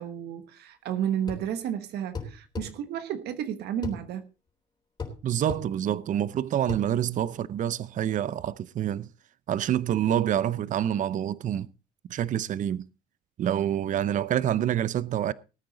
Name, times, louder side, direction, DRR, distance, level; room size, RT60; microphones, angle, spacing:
voice 1, 0.0-4.3, right 9 dB, 75° right, 1.2 m, -32 dB
sound 1, 1.3-1.5 2.2-2.7 3.8-4.0 5.0-5.2 5.5-5.7 6.7-6.9, left 4 dB, 25° left, 3.9 m, -35 dB
voice 2, 5.2-9.1 9.5-11.7 12.1-12.8 13.4-15.3, right 10 dB, 50° right, 0.7 m, -27 dB
19.0 x 9.2 x 3.9 m
cardioid pair, 110°, 17 cm